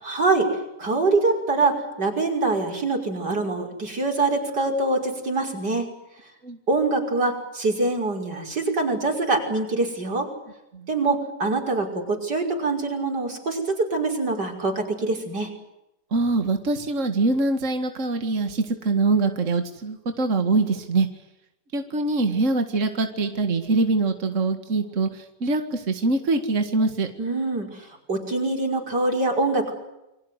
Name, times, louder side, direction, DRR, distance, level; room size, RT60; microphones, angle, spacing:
voice 1, 0.0-5.9 6.7-10.3 10.9-15.5 27.2-29.7, right 3 dB, 90° right, 3 dB, 6.4 m, -24 dB
voice 2, 16.1-21.1 21.7-27.1, right 3 dB, 50° right, 7 dB, 2.3 m, -23 dB
29.5 x 24.0 x 8.2 m, 0.90 s
omnidirectional pair, 1.8 m